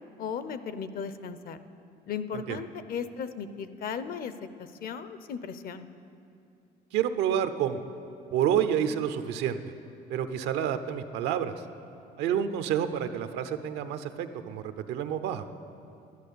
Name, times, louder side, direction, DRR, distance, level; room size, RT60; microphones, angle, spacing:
voice 1, 0.2-1.6 2.1-4.3 4.6-5.9, left 6 dB, 60° left, 12 dB, 0.7 m, -36 dB
voice 2, 6.9-7.8 8.3-9.6 10.1-11.7 12.2-15.5, right 9 dB, 90° right, 10 dB, 0.7 m, -29 dB
11.0 x 11.0 x 6.8 m, 2.6 s
cardioid pair, 110°, 17 cm